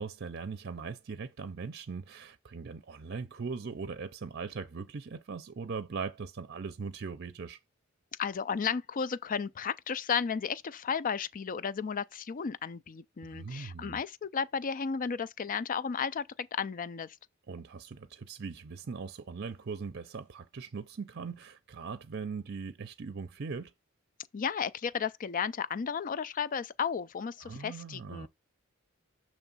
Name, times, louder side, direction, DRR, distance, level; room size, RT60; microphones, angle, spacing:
voice 1, 0.0-7.6 13.2-14.0 17.5-23.7 27.4-28.3, right 5 dB, 50° right, 0.6 m, -40 dB
voice 2, 8.2-17.2 24.3-28.3, left 6 dB, 40° left, 0.4 m, -33 dB
7.0 x 3.1 x 5.4 m
head